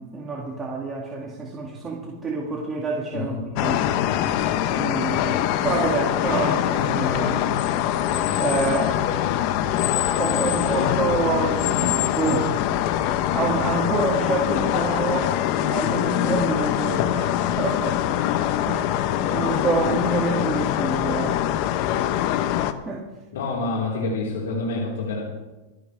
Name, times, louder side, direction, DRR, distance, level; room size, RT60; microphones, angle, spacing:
voice 1, 0.0-3.8 4.8-5.3 5.6-7.5 8.4-9.0 10.1-12.5 13.3-15.3 15.6-18.0 18.7-21.6 21.8-22.1 22.9-23.0, right 3 dB, 15° right, -4 dB, 2.2 m, -27 dB
voice 2, 3.1-3.4 3.9-4.1 23.3-25.2, left 3 dB, 85° left, -5 dB, 4.3 m, -27 dB
sound 1, 3.5-22.7, left 11 dB, 50° left, 0.9 m, -23 dB
28.0 x 9.7 x 3.4 m, 1.1 s
supercardioid pair, 135°, 0 cm